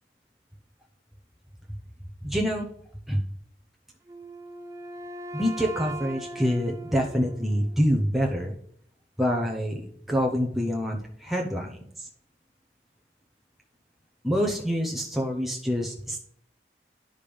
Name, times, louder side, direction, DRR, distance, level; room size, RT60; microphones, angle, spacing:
voice 1, 2.2-2.7 3.1-3.2 5.3-8.5 9.2-9.8 10.1-12.1 14.2-16.2, equal, ahead, -1 dB, 0.8 m, -26 dB
Wind instrument woodwind instrument, 4.1-8.0, right 2 dB, 20° right, 0.4 m, -40 dB
10.0 x 5.2 x 5.2 m, 0.65 s
head